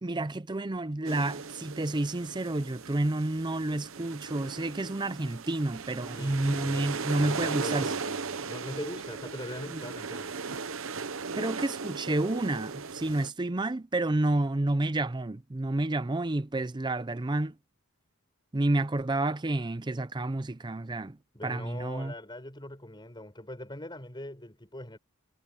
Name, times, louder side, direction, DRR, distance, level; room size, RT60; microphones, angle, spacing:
voice 1, 0.0-7.9 9.7-9.8 11.4-17.5 18.5-21.2 21.4-22.1, right 2 dB, 20° right, 0.5 m, -30 dB
sound 1, 1.0-13.3, right 5 dB, 60° right, 0.9 m, -37 dB
voice 2, 6.1-10.3 21.3-25.0, left 1 dB, 20° left, 5.4 m, -42 dB
head